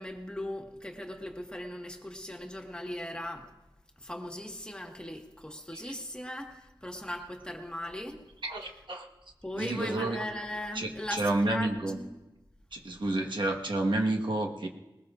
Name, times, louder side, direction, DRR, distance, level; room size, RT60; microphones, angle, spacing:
voice 1, 0.0-3.5 4.0-8.2 9.4-12.2, left 1 dB, 10° left, 2 dB, 1.6 m, -39 dB
voice 2, 8.4-9.1 9.5-10.3 10.7-12.0 12.7-14.7, right 2 dB, 70° right, 0 dB, 1.4 m, -30 dB
20.5 x 20.0 x 2.5 m, 1.0 s
wide cardioid pair, 85°, 8 cm